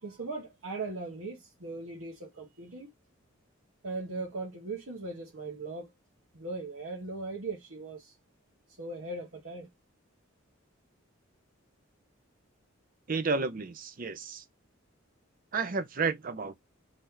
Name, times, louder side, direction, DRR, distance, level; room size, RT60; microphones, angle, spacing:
voice 1, 0.0-2.9 3.8-5.9 6.3-8.1 8.8-9.7, right 3 dB, 90° right, 1.3 m, -39 dB
voice 2, 13.1-14.4 15.5-16.6, right 4 dB, 45° right, 0.5 m, -31 dB
3.2 x 2.8 x 3.7 m
head